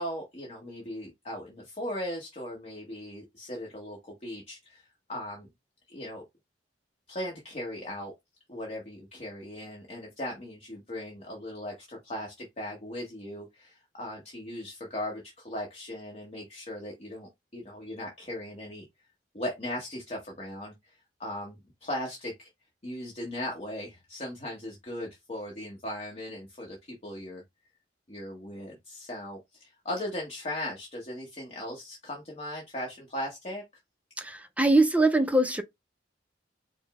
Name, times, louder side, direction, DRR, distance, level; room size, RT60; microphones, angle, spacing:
voice 1, 0.0-5.5 5.9-6.2 7.1-8.1 8.5-18.8 19.3-22.5 22.8-27.4 28.1-33.6, left 1 dB, 40° left, 1.1 m, -38 dB
voice 2, 34.2-35.6, right 2 dB, 10° right, 0.4 m, -23 dB
5.2 x 2.0 x 3.5 m
head